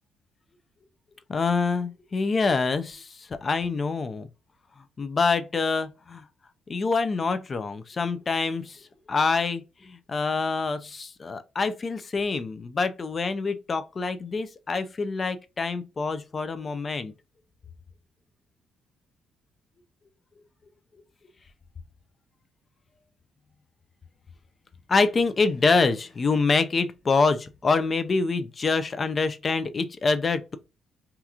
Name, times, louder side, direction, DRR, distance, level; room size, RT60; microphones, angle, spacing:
voice 1, 1.3-4.3 5.0-6.2 6.7-17.1 24.9-30.6, left 4 dB, 35° left, 0.4 m, -26 dB
2.8 x 2.4 x 3.5 m
cardioid pair, 90°, 0 cm